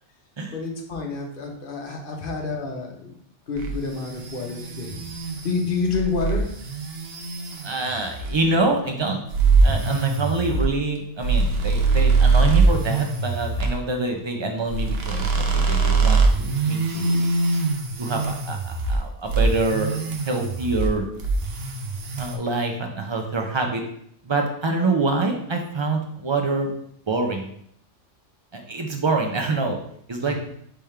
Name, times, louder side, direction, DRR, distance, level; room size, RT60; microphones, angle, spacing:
voice 1, 0.5-3.1 3.5-5.0 5.4-6.5 30.2-30.4, left 4 dB, 50° left, 1 dB, 1.0 m, -28 dB
sound 1, 3.6-8.4 9.3-13.7 14.7-19.0 19.3-20.9 21.2-22.4, right 3 dB, 60° right, 0.9 m, -22 dB
voice 2, 7.6-9.2 9.6-17.3 18.0-20.0 20.3-21.1 22.2-23.8 24.2-26.7 27.1-27.6 28.5-29.8 30.1-30.4, right 3 dB, 35° right, 2 dB, 0.4 m, -26 dB
3.5 x 3.5 x 4.3 m, 0.67 s
omnidirectional pair, 1.2 m